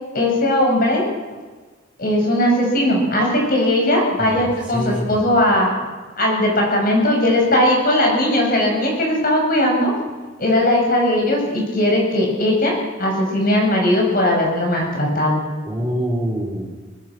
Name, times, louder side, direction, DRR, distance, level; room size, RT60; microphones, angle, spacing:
voice 1, 0.1-1.0 2.0-5.7 6.2-9.9 10.4-12.7 13.0-15.4, left 1 dB, 45° left, 0 dB, 6.8 m, -18 dB
voice 2, 4.7-5.3 15.7-16.7, equal, 5° right, -4 dB, 4.3 m, -25 dB
22.5 x 20.0 x 6.3 m, 1.4 s
head